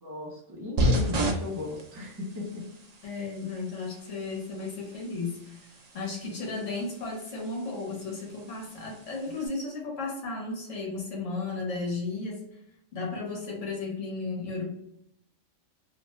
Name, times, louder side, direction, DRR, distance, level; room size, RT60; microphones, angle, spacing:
voice 1, 0.0-2.6, left 2 dB, 25° right, -4 dB, 0.5 m, -36 dB
sound 1, 0.8-9.5, equal, 85° right, 0.3 m, -34 dB
voice 2, 3.0-12.4 12.9-14.7, left 3 dB, 70° left, -2 dB, 1.3 m, -34 dB
2.9 x 2.2 x 3.0 m, 0.76 s
omnidirectional pair, 1.3 m